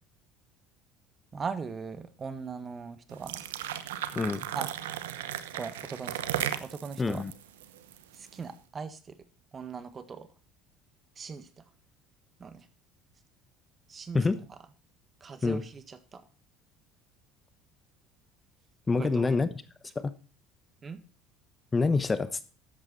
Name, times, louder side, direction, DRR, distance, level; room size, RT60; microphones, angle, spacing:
voice 1, 1.3-3.4 4.5-4.7 5.5-7.2 8.1-9.2 9.5-10.3 11.1-11.6 12.4-12.7 13.9-14.6 15.2-16.2 19.0-19.4 20.8-21.0, right 5 dB, 35° right, 13 dB, 1.6 m, -40 dB
sound 1, 3.1-8.4, right 11 dB, 90° right, 0.9 m, -35 dB
voice 2, 4.1-4.5 7.0-7.3 14.1-14.4 15.4-15.6 18.9-19.5 19.9-20.1 21.7-22.4, left 4 dB, 20° left, 14 dB, 1.0 m, -26 dB
12.5 x 8.8 x 4.2 m, 0.34 s
hypercardioid pair, 80°, 0 cm